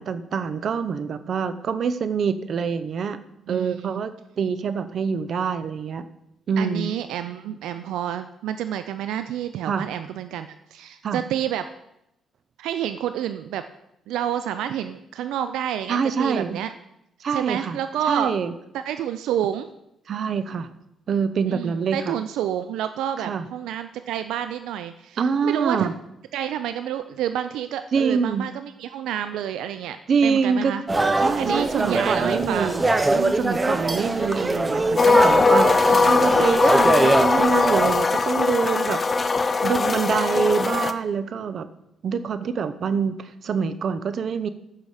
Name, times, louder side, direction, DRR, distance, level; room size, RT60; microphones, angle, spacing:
voice 1, 0.0-3.2 3.5-6.1 6.5-6.9 9.7-9.9 11.0-11.2 15.9-16.6 17.2-17.8 18.1-18.5 20.1-20.7 21.1-22.2 23.2-23.4 25.2-25.9 27.9-28.5 30.1-30.7 31.2-32.8 33.1-39.3 39.6-41.7 42.0-44.5, right 6 dB, 55° right, 12 dB, 0.8 m, -25 dB
voice 2, 3.5-4.0 6.6-11.6 12.6-13.6 14.1-16.7 17.3-18.3 18.7-19.7 21.5-25.9 26.3-30.0 30.2-30.8 31.4-32.9 34.0-34.5 35.9-36.3, right 10 dB, 85° right, 10 dB, 0.5 m, -29 dB
sound 1, 30.9-38.0, right 2 dB, 20° right, 0.8 m, -23 dB
sound 2, 35.0-40.9, left 4 dB, 30° left, 0.7 m, -20 dB
15.0 x 6.1 x 5.0 m, 0.82 s
cardioid pair, 90°, 0 cm